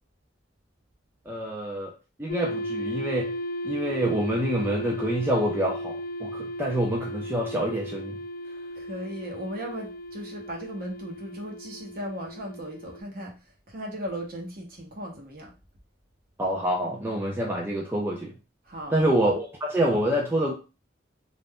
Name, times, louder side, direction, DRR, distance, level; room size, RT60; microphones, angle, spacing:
voice 1, 1.3-1.9 2.2-3.3 3.6-8.2 16.4-18.3 18.9-20.5, right 1 dB, 10° right, -1 dB, 0.4 m, -26 dB
sound 1, 2.3-13.0, left 1 dB, 55° left, 0.4 m, -35 dB
voice 2, 8.8-13.3 13.7-15.5 18.7-19.1, equal, 50° right, 0 dB, 0.9 m, -37 dB
2.5 x 2.2 x 3.5 m, 0.31 s
head